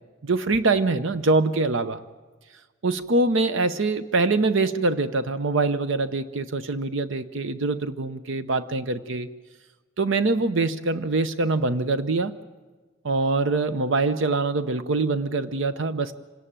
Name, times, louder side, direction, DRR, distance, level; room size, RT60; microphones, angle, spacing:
voice 1, 0.2-2.0 2.8-9.3 10.0-12.3 13.0-16.1, right 3 dB, 65° right, 11 dB, 0.7 m, -24 dB
26.5 x 18.0 x 8.9 m, 1.4 s
head